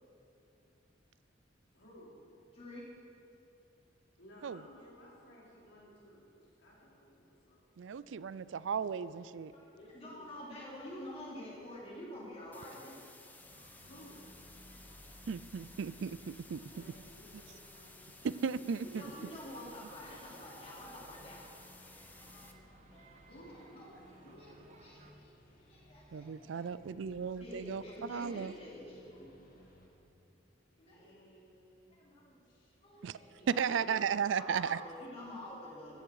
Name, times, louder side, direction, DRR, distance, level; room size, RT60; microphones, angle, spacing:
voice 1, 1.7-2.2 4.2-7.6 9.7-10.3 13.8-14.3 16.7-17.5 23.3-24.7 30.7-33.2, equal, 70° left, -5 dB, 4.2 m, -57 dB
voice 2, 2.5-2.8 9.5-13.0 18.8-21.4 21.8-23.9 24.4-24.5 24.8-26.6 27.4-29.6 30.0-30.1 30.8-31.2 31.9-32.4 32.8-36.0, left 1 dB, 30° left, -5 dB, 3.8 m, -49 dB
voice 3, 7.8-9.5 15.3-16.6 18.2-19.0 26.1-27.8 28.1-28.5 33.0-33.2 33.5-34.8, right 6 dB, 75° right, 17 dB, 0.4 m, -35 dB
sound 1, 12.5-22.5, left 3 dB, 10° left, 0.8 m, -57 dB
sound 2, 13.4-29.9, left 1 dB, 45° left, 2.0 m, -61 dB
sound 3, 13.5-25.1, right 2 dB, 35° right, 1.1 m, -62 dB
14.5 x 14.5 x 4.8 m, 2.8 s
head